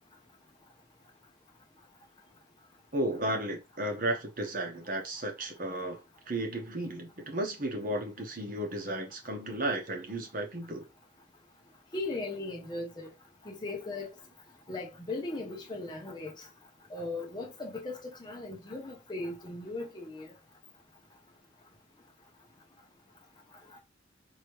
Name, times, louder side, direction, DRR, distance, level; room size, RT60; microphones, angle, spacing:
voice 1, 2.9-10.8, right 1 dB, 45° right, 1.0 m, -34 dB
voice 2, 11.9-13.1 13.4-14.1 14.7-16.5 16.9-20.3, left 2 dB, 25° left, 0.7 m, -38 dB
4.6 x 3.0 x 3.1 m
head